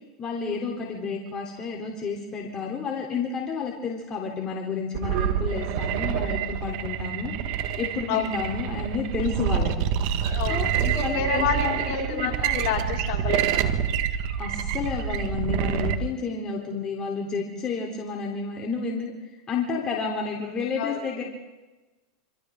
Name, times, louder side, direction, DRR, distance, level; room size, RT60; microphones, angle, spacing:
voice 1, 0.2-7.3 7.8-9.9 10.5-10.7 11.0-12.3 14.4-19.1 19.5-21.2, left 5 dB, 25° left, -2 dB, 3.6 m, -31 dB
sound 1, 4.9-16.0, right 9 dB, 55° right, 1.6 m, -27 dB
voice 2, 8.1-8.4 10.2-13.7 16.5-16.8 20.8-21.1, left 6 dB, 55° left, -2 dB, 5.4 m, -29 dB
26.5 x 26.0 x 3.8 m, 1.1 s
supercardioid pair, 125°, 3 cm